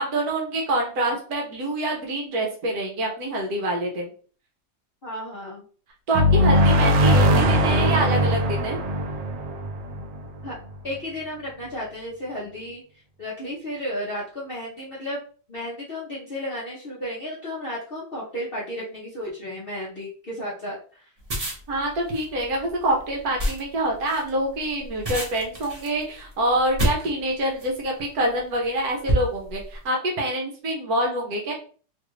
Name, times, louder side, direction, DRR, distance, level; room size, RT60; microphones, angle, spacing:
voice 1, 0.0-4.1 6.1-8.8 21.7-31.5, right 1 dB, 65° right, 0 dB, 1.1 m, -26 dB
voice 2, 5.0-5.6 10.4-10.6 10.8-12.8 13.2-15.2 15.5-21.0, equal, 50° left, -6 dB, 0.7 m, -33 dB
sound 1, 6.1-10.7, equal, 80° right, 1.3 m, -20 dB
sound 2, 21.2-27.8 28.5-28.7 29.1-29.8, right 1 dB, 35° right, 0.5 m, -28 dB
3.2 x 2.4 x 3.0 m, 0.42 s
omnidirectional pair, 1.9 m